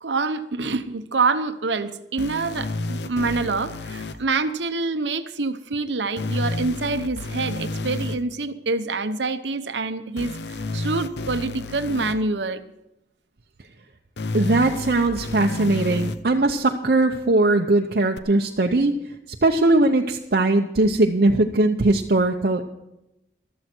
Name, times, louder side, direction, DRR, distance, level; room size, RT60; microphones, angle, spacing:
voice 1, 0.0-12.6, right 3 dB, 90° right, 10 dB, 0.9 m, -26 dB
sound 1, 2.2-4.1 6.2-8.2 10.2-12.1 14.2-16.2 18.2-18.3, left 2 dB, 75° left, 0.7 m, -30 dB
voice 2, 14.3-22.6, right 2 dB, 60° right, 2 dB, 0.7 m, -20 dB
14.0 x 13.0 x 4.5 m, 0.89 s
head